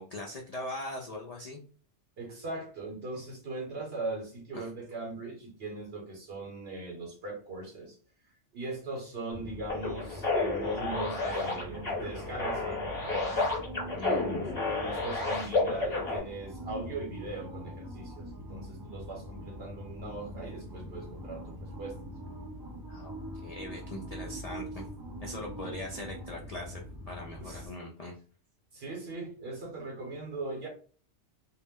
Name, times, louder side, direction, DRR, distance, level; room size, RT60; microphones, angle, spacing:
voice 1, 0.0-1.6 4.5-4.7 13.9-14.5 22.9-23.1 23.4-24.9 25.2-28.1, left 1 dB, 65° left, -1 dB, 0.3 m, -41 dB
voice 2, 2.2-8.0 8.5-13.4 14.0-22.0 25.6-25.7 27.4-27.7 28.7-30.7, right 2 dB, 60° right, 0 dB, 1.0 m, -39 dB
sound 1, 9.3-27.7, equal, 40° right, 0.3 m, -43 dB
sound 2, 9.7-16.2, left 3 dB, 35° left, 1.0 m, -31 dB
2.2 x 2.0 x 3.5 m, 0.42 s
omnidirectional pair, 1.2 m